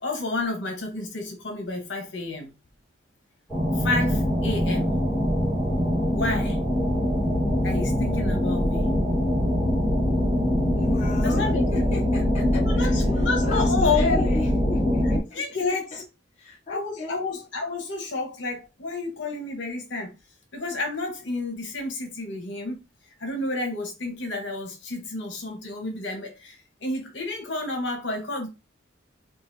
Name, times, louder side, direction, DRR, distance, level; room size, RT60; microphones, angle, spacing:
voice 1, 0.0-2.5 3.7-4.9 6.1-6.6 7.6-8.9 11.2-11.7 12.6-14.3 15.3-16.0 16.7-20.1 20.5-22.8 23.2-28.5, left 3 dB, 70° left, 1.1 m, -30 dB
sound 1, 3.5-15.2, left 1 dB, ahead, 1.6 m, -23 dB
voice 2, 10.8-13.0 13.4-15.4 16.4-17.2, left 3 dB, 35° left, 0.7 m, -34 dB
3.7 x 2.5 x 2.6 m
head